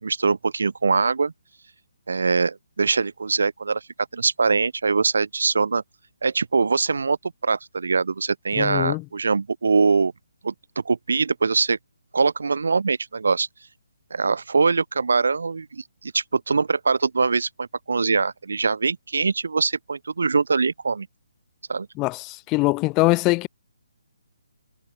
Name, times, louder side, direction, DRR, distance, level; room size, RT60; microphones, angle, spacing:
voice 1, 0.0-1.3 2.1-3.8 4.1-5.8 6.2-7.2 7.4-10.1 10.4-10.5 10.8-11.8 12.1-13.5 14.1-21.1 21.7-21.9, right 4 dB, 70° right, 3.1 m, -22 dB
voice 2, 8.6-9.0 22.0-23.5, left 24 dB, 20° left, 1.1 m, -22 dB
figure-of-eight pair, 150°, 0 cm